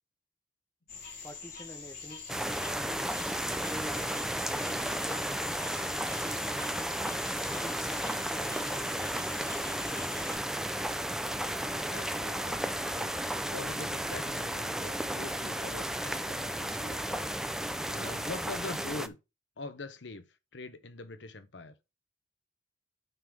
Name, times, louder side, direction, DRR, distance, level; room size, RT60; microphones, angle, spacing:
sound 1, 0.9-10.4, left 5 dB, 55° left, 4.7 m, -45 dB
voice 1, 1.2-2.2 2.6-3.1 3.6-5.6 6.2-7.0 7.6-9.1, equal, 15° left, 1.1 m, -48 dB
sound 2, 2.3-19.1, right 1 dB, 5° right, 0.4 m, -33 dB
voice 2, 11.9-19.2 19.6-20.3 20.5-21.8, left 3 dB, 85° left, 0.9 m, -44 dB
9.2 x 3.9 x 4.9 m
head